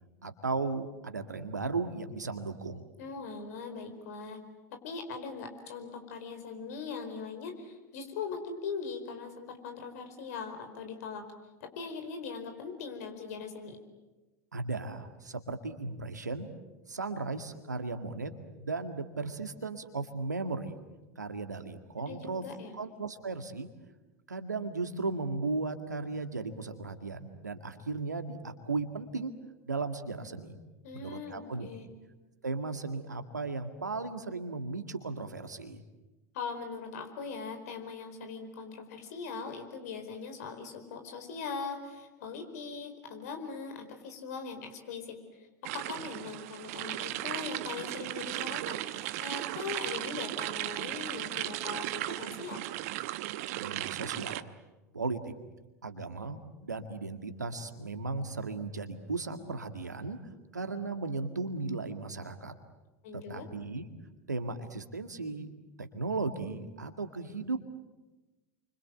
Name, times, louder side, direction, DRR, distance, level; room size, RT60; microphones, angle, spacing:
voice 1, 0.2-2.9 14.5-16.5 16.9-20.8 21.2-22.4 22.7-23.7 24.3-29.3 29.7-30.6 30.9-31.7 32.4-35.8 53.6-54.5 54.9-55.3 55.8-60.2 60.5-62.5 63.3-63.8 64.3-65.5 65.8-67.7, right 3 dB, 85° right, 7 dB, 2.0 m, -36 dB
voice 2, 3.0-4.4 4.7-11.2 11.6-13.8 22.0-22.8 30.8-31.9 36.3-52.6 63.0-63.5, left 5 dB, 65° left, 6 dB, 4.7 m, -40 dB
sound 1, 45.6-54.4, right 16 dB, 60° right, 0.9 m, -36 dB
29.0 x 25.0 x 7.9 m, 1.1 s
figure-of-eight pair, 80°, 9 cm